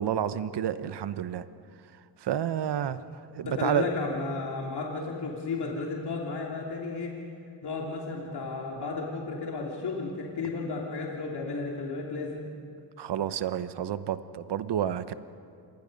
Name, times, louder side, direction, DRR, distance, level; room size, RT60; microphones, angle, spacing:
voice 1, 0.0-1.5 2.2-3.0 3.3-3.9 13.0-15.1, right 10 dB, 60° right, 13 dB, 1.0 m, -30 dB
voice 2, 3.4-7.1 7.6-12.4, left 3 dB, 55° left, -2 dB, 2.9 m, -33 dB
27.0 x 21.5 x 5.3 m, 2.5 s
cardioid pair, 95°, 46 cm